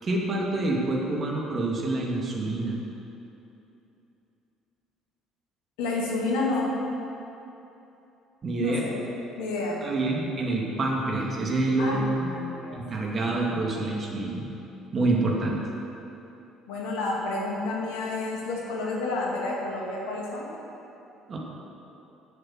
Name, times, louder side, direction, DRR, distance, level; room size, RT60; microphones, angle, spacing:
voice 1, 0.0-2.8 8.4-8.8 9.8-12.3 12.7-14.4 14.9-15.6 21.3-21.4, right 2 dB, 40° right, -2 dB, 2.6 m, -27 dB
voice 2, 5.8-6.7 8.6-8.9 9.4-9.8 11.8-12.0 12.3-12.8 13.2-13.3 16.7-20.5, left 2 dB, 70° left, -3 dB, 2.4 m, -30 dB
11.5 x 7.8 x 6.6 m, 2.9 s
hypercardioid pair, 55°, 0 cm